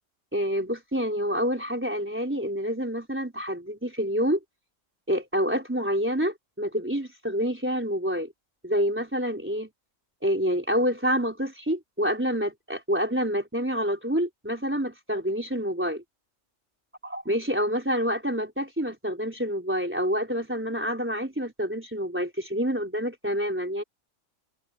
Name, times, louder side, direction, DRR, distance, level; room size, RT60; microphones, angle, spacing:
voice 1, 0.3-4.4 5.1-8.3 8.6-9.7 10.2-16.0 17.0-23.8, equal, 10° right, 4.1 m, -27 dB
open air
omnidirectional pair, 1.4 m